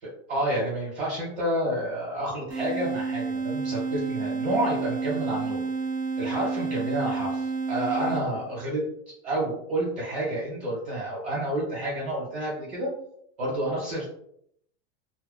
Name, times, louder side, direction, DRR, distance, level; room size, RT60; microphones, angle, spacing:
voice 1, 0.0-5.6 6.2-8.8 9.2-12.9 13.4-14.0, right 1 dB, 30° right, -6 dB, 1.0 m, -29 dB
sound 1, 2.5-8.5, right 4 dB, 65° right, 1.0 m, -30 dB
2.5 x 2.2 x 2.4 m, 0.70 s
supercardioid pair, 175°, 34 cm